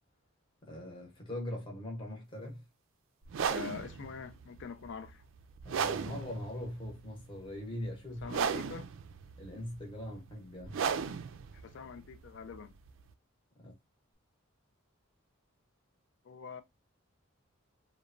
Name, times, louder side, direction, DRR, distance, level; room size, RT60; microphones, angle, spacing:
voice 1, 0.6-2.6 5.6-8.4 9.4-10.9 13.6-13.7, left 1 dB, 25° left, 0.8 m, -41 dB
sound 1, 3.2-13.1, right 6 dB, 65° right, 0.3 m, -36 dB
voice 2, 3.5-5.2 8.2-8.9 11.5-12.7 16.2-16.6, left 6 dB, 60° left, 0.4 m, -44 dB
3.0 x 2.1 x 2.4 m
head